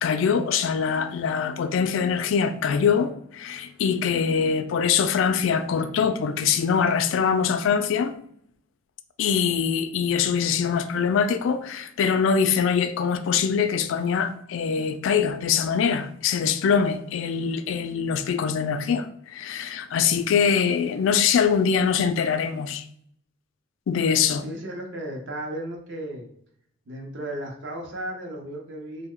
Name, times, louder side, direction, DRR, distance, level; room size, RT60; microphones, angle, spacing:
voice 1, 0.0-8.1 9.2-22.8 23.9-24.5, left 6 dB, 70° left, 0.3 m, -23 dB
voice 2, 24.4-26.3 26.9-29.1, right 1 dB, 60° right, 0.6 m, -34 dB
3.0 x 2.1 x 3.6 m
head